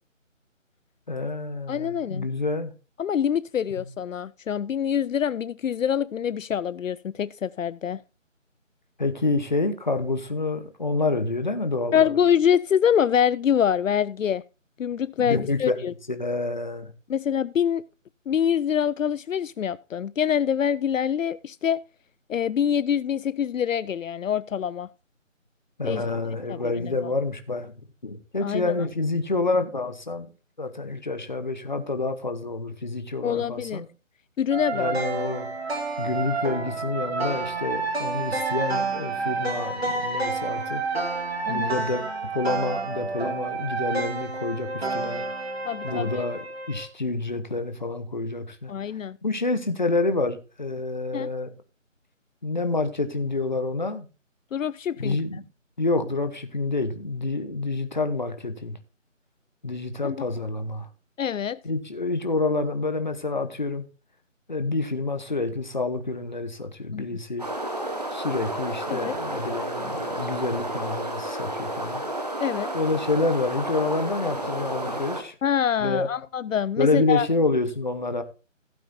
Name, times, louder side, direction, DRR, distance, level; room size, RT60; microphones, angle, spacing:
voice 1, 1.1-2.7 3.8-3.9 9.0-12.0 15.2-16.9 25.8-27.7 28.0-30.3 30.6-33.9 34.7-35.5 36.0-40.8 41.5-42.0 42.3-45.2 45.8-48.7 49.2-51.5 52.4-54.1 55.0-55.4 55.8-58.8 59.6-60.9 61.6-63.8 64.5-67.5 68.1-72.0 72.7-75.3 75.8-76.1 76.8-78.2, left 3 dB, 35° left, 1.1 m, -28 dB
voice 2, 1.7-2.3 3.0-8.0 11.9-14.4 14.8-15.9 17.1-17.8 18.3-21.8 22.3-24.9 25.8-26.0 26.5-27.1 28.4-28.7 33.2-33.8 34.4-35.0 41.5-41.8 45.7-46.2 48.7-49.2 51.1-51.3 54.5-55.2 60.0-60.2 61.2-61.6 66.9-67.1 68.9-69.2 72.4-72.7 75.4-77.3, left 8 dB, 75° left, 0.5 m, -25 dB
sound 1, 34.5-46.9, right 3 dB, 50° right, 2.2 m, -29 dB
sound 2, 67.4-75.2, right 1 dB, 30° right, 1.1 m, -31 dB
15.5 x 8.4 x 2.7 m
figure-of-eight pair, 170°, 39 cm